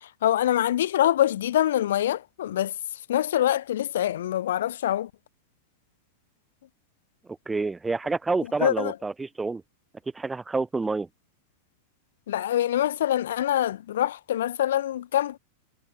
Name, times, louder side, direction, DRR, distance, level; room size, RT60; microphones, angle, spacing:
voice 1, 0.0-2.7 3.1-5.1 8.6-9.0 12.3-15.4, left 12 dB, 60° left, 1.6 m, -25 dB
voice 2, 7.5-9.6 10.1-11.1, right 3 dB, 10° right, 7.0 m, -28 dB
figure-of-eight pair, 90°, 0 cm